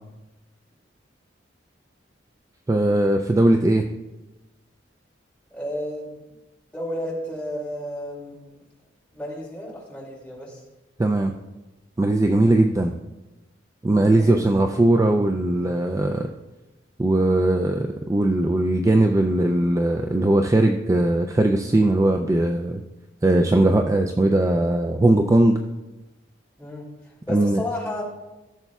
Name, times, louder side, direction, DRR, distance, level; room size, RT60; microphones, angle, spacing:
voice 1, 2.7-3.8 11.0-11.3 12.0-12.9 13.8-16.3 17.0-22.8 23.2-25.6 27.3-27.6, right 1 dB, 20° right, 4 dB, 0.3 m, -19 dB
voice 2, 5.5-6.2 6.7-8.6 9.1-10.6 12.3-12.6 14.1-14.5 26.6-28.0, left 1 dB, 10° left, -5 dB, 2.4 m, -32 dB
15.0 x 7.0 x 2.3 m, 1.0 s
head